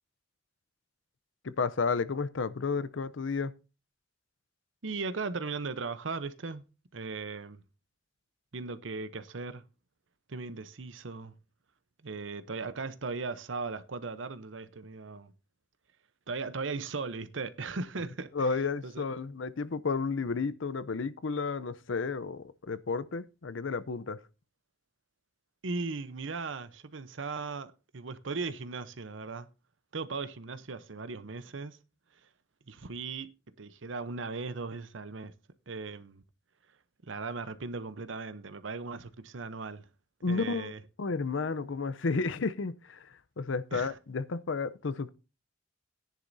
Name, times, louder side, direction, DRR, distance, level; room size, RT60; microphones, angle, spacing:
voice 1, 1.4-3.5 18.3-24.2 40.2-45.1, left 4 dB, 90° left, 0.6 m, -32 dB
voice 2, 4.8-6.6 6.9-7.6 8.5-9.6 10.3-11.3 12.0-15.3 16.3-18.5 18.8-19.0 25.6-29.5 29.9-31.8 32.7-35.3 35.7-36.2 37.1-39.9 40.3-40.8 43.7-43.9, right 4 dB, 90° right, 0.8 m, -38 dB
14.5 x 10.0 x 2.7 m
head